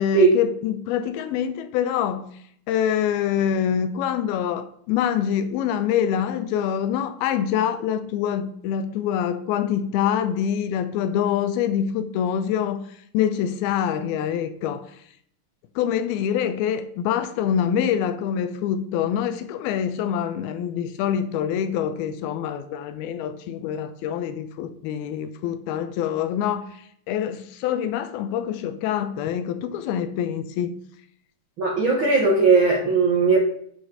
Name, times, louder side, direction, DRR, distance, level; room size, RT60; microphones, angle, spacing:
voice 1, 0.0-2.3 2.7-12.9 13.1-14.9 15.8-26.7 27.1-30.8, left 9 dB, 80° left, 2.4 m, -25 dB
voice 2, 31.6-33.4, right 4 dB, 75° right, 1.1 m, -18 dB
11.0 x 5.1 x 4.0 m
omnidirectional pair, 4.6 m